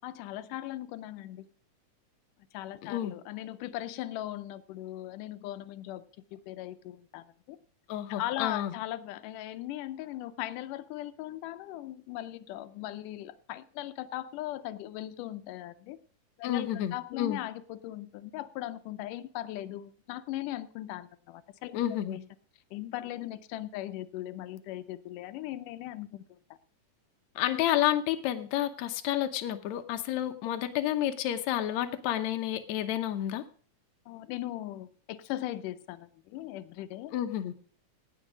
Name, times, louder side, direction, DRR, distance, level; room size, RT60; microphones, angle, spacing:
voice 1, 0.0-1.5 2.5-6.0 6.3-7.6 8.1-16.0 16.4-21.8 22.0-22.2 22.7-26.4 30.1-30.3 34.1-37.1, left 14 dB, 90° left, 12 dB, 2.2 m, -39 dB
voice 2, 2.8-3.1 7.9-8.7 16.4-17.4 21.7-22.2 27.4-33.4 37.1-37.5, left 12 dB, 70° left, 8 dB, 2.0 m, -30 dB
18.0 x 6.4 x 5.0 m, 0.43 s
omnidirectional pair, 3.6 m